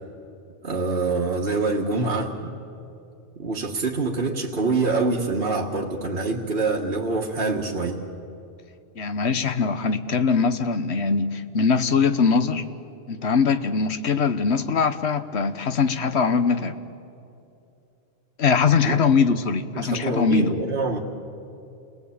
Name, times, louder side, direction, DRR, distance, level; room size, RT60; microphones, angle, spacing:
voice 1, 0.6-2.6 3.4-8.0 18.8-19.0 19.8-21.0, right 3 dB, 55° right, -3 dB, 1.8 m, -25 dB
voice 2, 9.0-12.6 13.1-16.8 18.4-20.5, left 5 dB, 70° left, 10 dB, 1.3 m, -22 dB
30.0 x 19.0 x 8.7 m, 2.7 s
omnidirectional pair, 1.2 m